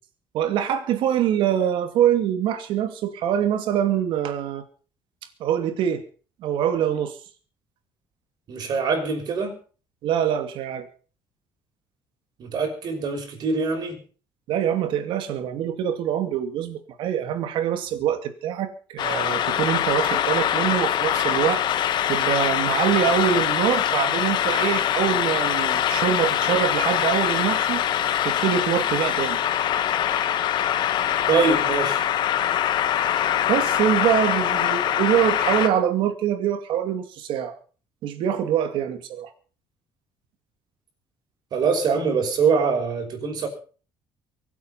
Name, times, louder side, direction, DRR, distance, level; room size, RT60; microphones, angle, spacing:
voice 1, 0.3-4.6 5.4-6.0 6.4-7.2 10.0-10.9 14.5-21.6 22.1-27.8 28.2-29.4 33.5-37.5 38.0-39.3, right 9 dB, 70° right, 9 dB, 2.5 m, -24 dB
voice 2, 8.5-9.6 12.4-14.0 31.3-32.0 41.5-43.5, right 5 dB, 50° right, 4 dB, 6.0 m, -23 dB
sound 1, 19.0-35.7, left 10 dB, 55° left, 1.4 m, -23 dB
24.0 x 8.6 x 5.7 m, 0.40 s
cardioid pair, 145°, 9 cm